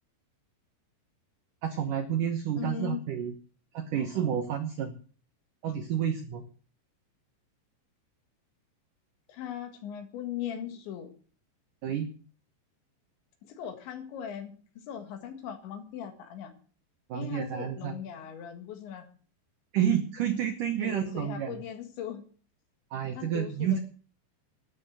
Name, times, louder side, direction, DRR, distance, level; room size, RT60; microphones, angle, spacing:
voice 1, 1.6-3.3 3.7-5.0 5.6-6.5 11.8-12.1 17.1-18.0 19.7-21.6 22.9-23.8, right 9 dB, 75° right, 6 dB, 1.9 m, -30 dB
voice 2, 2.6-3.0 9.3-11.1 13.4-14.5 14.9-16.5 17.1-19.1 20.8-22.2 23.2-23.8, left 9 dB, 75° left, 6 dB, 4.1 m, -39 dB
12.5 x 8.6 x 8.0 m, 0.42 s
omnidirectional pair, 5.4 m